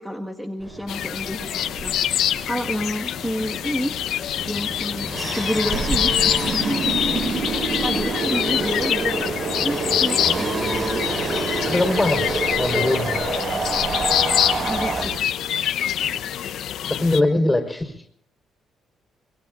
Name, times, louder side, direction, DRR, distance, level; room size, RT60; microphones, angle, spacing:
voice 1, 0.0-3.9 4.5-6.1 6.6-7.3 7.8-11.0 12.7-12.8 14.6-15.1 17.7-17.8, equal, 5° right, 1 dB, 1.6 m, -29 dB
sound 1, 0.6-15.2, right 2 dB, 35° right, 4.4 m, -32 dB
sound 2, 0.9-17.2, left 10 dB, 75° left, 0.8 m, -25 dB
Wind, 4.9-15.1, right 5 dB, 60° right, 2.0 m, -28 dB
voice 2, 11.7-12.3 12.6-13.2 16.9-17.9, left 2 dB, 15° left, 2 dB, 4.2 m, -21 dB
25.5 x 22.5 x 2.5 m, 0.66 s
cardioid pair, 90°, 0 cm